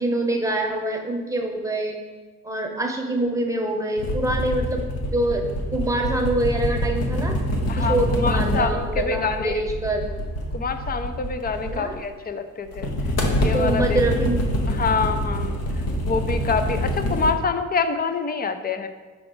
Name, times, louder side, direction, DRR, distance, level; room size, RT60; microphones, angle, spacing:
voice 1, 0.0-2.0 2.4-4.8 5.1-7.4 7.8-10.1 11.6-12.0 13.5-14.4 17.1-17.3, right 1 dB, 10° right, 2 dB, 0.9 m, -25 dB
sound 1, 4.0-12.1 12.7-17.3, equal, 55° left, 1.1 m, -25 dB
voice 2, 7.7-9.6 10.5-12.9 13.4-14.0 14.7-15.6 16.1-18.9, left 4 dB, 30° left, 9 dB, 0.5 m, -26 dB
5.9 x 4.9 x 3.8 m, 1.3 s
cardioid pair, 90°, 30 cm